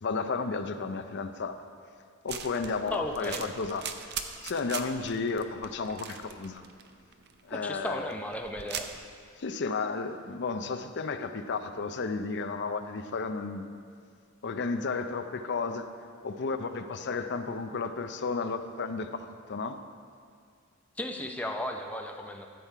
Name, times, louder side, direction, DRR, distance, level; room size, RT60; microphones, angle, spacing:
voice 1, 0.0-1.6 2.2-3.8 4.4-6.6 7.5-8.1 9.4-13.7 14.4-15.9 16.2-19.2 19.5-19.8, left 4 dB, 50° left, 8 dB, 0.5 m, -33 dB
sound 1, 2.3-9.0, right 7 dB, 50° right, 0.6 m, -41 dB
voice 2, 2.9-3.4 7.5-8.9 21.0-22.5, left 1 dB, 5° left, 3 dB, 0.6 m, -35 dB
13.5 x 7.4 x 4.6 m, 2.2 s
head